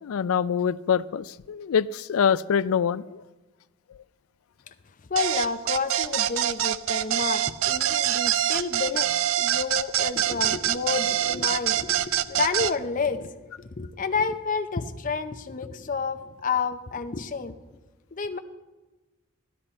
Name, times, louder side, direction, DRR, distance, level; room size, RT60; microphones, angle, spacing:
voice 1, 0.0-3.2, left 7 dB, 80° left, 18 dB, 0.4 m, -25 dB
voice 2, 5.1-9.1 9.4-17.6 18.1-18.4, left 5 dB, 40° left, 8 dB, 0.7 m, -30 dB
sound 1, 5.2-12.7, right 11 dB, 70° right, 0.4 m, -25 dB
13.0 x 12.0 x 4.3 m, 1.2 s
head